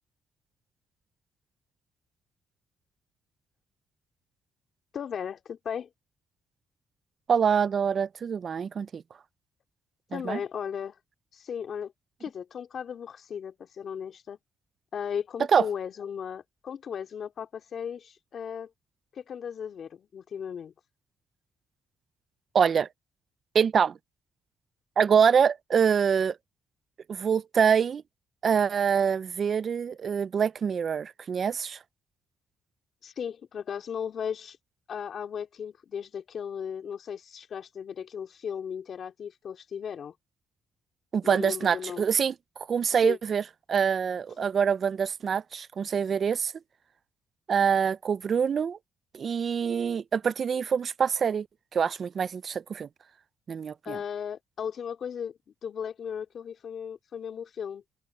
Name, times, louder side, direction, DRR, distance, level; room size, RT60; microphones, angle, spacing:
voice 1, 4.9-5.9 10.1-11.0 11.3-11.9 12.2-14.4 14.9-18.7 19.1-20.7 33.0-34.6 34.9-40.1 41.2-42.0 43.0-43.2 44.4-44.5 53.8-57.8, left 7 dB, 55° left, 3.2 m, -36 dB
voice 2, 7.3-9.0 10.1-10.4 15.5-15.7 22.5-22.9 23.5-24.0 25.0-26.4 27.1-28.0 28.4-31.8 41.1-42.3 42.7-46.5 47.5-48.8 49.1-51.5 51.7-52.9 53.5-54.0, right 7 dB, 50° right, 0.5 m, -25 dB
cardioid pair, 90°, 0 cm